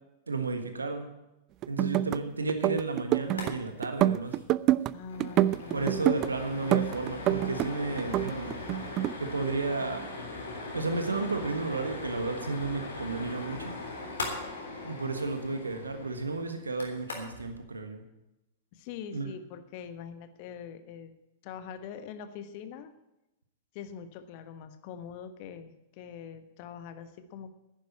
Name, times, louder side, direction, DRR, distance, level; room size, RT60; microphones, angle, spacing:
voice 1, 0.3-1.1 1.7-4.4 5.7-8.6 9.2-10.1 10.7-13.7 14.8-18.0 19.1-19.3, right 3 dB, 75° right, 7 dB, 1.4 m, -32 dB
sound 1, 1.6-2.2 2.5-3.5 3.8-4.9 5.2-6.3 6.7-7.7 8.0-9.1, right 14 dB, 35° right, 0.4 m, -26 dB
sound 2, 3.2-3.5 3.8-3.9 4.2-4.4 4.8-17.5, left 3 dB, 70° left, 3.6 m, -40 dB
voice 2, 4.9-5.9 18.7-21.1 21.4-22.9 23.7-27.5, left 7 dB, 45° left, 10 dB, 1.2 m, -43 dB
10.5 x 10.5 x 8.6 m, 0.94 s
figure-of-eight pair, 100°, 0 cm